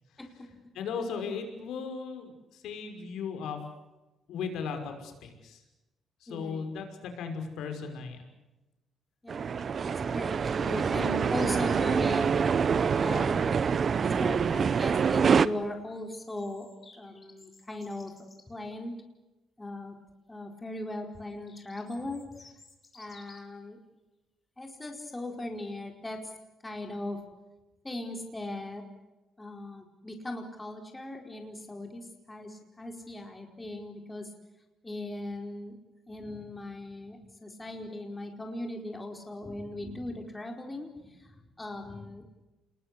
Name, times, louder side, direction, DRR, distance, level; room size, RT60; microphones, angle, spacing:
voice 1, 0.2-0.5 6.3-6.7 9.2-12.7 13.0-13.6 14.1-16.7 17.0-18.1 18.5-18.9 19.6-19.9 20.3-22.3 22.9-23.8 24.6-26.3 26.6-27.2 27.8-28.8 29.4-34.3 34.8-35.8 36.1-42.3, left 1 dB, 15° left, 3 dB, 4.6 m, -38 dB
voice 2, 0.7-3.6 4.3-5.6 6.2-8.2, left 5 dB, 80° left, 5 dB, 5.8 m, -36 dB
sound 1, 9.3-15.5, right 6 dB, 45° right, 0.9 m, -26 dB
sound 2, 10.9-12.3 15.9-18.5 21.2-23.6, left 3 dB, 30° left, 5.3 m, -56 dB
28.0 x 21.0 x 8.3 m, 1.0 s
cardioid pair, 90°, 0 cm